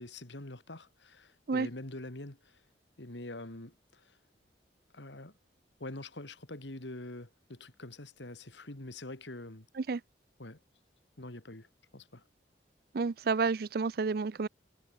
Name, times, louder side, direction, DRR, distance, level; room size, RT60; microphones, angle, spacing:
voice 1, 0.0-2.6 3.0-4.2 4.9-5.3 5.8-9.7 10.4-10.6 11.2-11.7 11.9-12.2, left 2 dB, 80° left, 2.6 m, -45 dB
voice 2, 12.9-14.5, right 4 dB, 55° right, 0.5 m, -30 dB
head